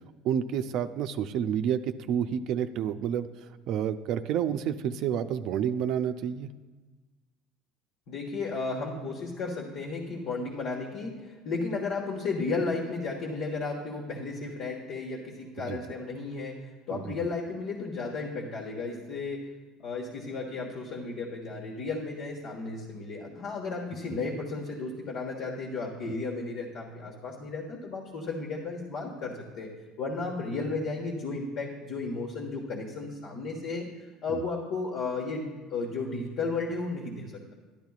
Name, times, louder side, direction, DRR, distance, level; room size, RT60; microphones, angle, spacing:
voice 1, 0.2-3.3 3.7-6.5 15.7-15.8 16.9-17.2 26.1-26.2 34.3-34.4, right 9 dB, 60° right, 10 dB, 0.5 m, -29 dB
voice 2, 8.1-19.4 19.8-29.7 30.0-33.9 34.2-37.5, left 3 dB, 65° left, -2 dB, 1.5 m, -34 dB
12.0 x 10.5 x 2.4 m, 1.3 s
hypercardioid pair, 80°, 0 cm